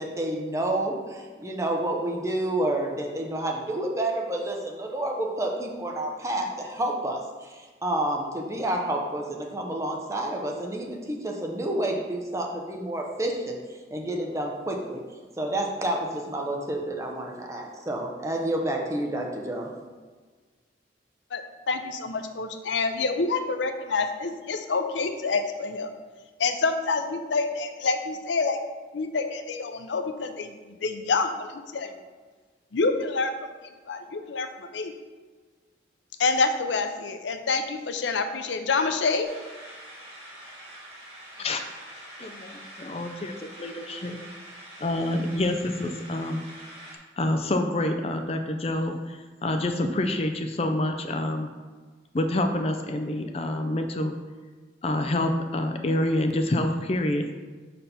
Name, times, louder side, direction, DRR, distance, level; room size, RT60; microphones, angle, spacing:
voice 1, 0.0-13.6 13.9-15.0 15.4-19.7, right 1 dB, 15° right, 0 dB, 0.8 m, -29 dB
voice 2, 21.3-25.9 26.4-28.6 28.9-30.5 30.8-31.9 32.7-33.5 33.9-34.9 36.2-39.3, left 4 dB, 90° left, 8 dB, 0.6 m, -27 dB
sound 1, 39.2-47.0, right 1 dB, 30° right, 1.6 m, -45 dB
voice 3, 42.2-44.2 44.8-46.4 47.2-51.5 52.1-54.2 54.8-57.2, left 1 dB, 35° left, 6 dB, 0.4 m, -27 dB
5.2 x 4.2 x 5.7 m, 1.4 s
head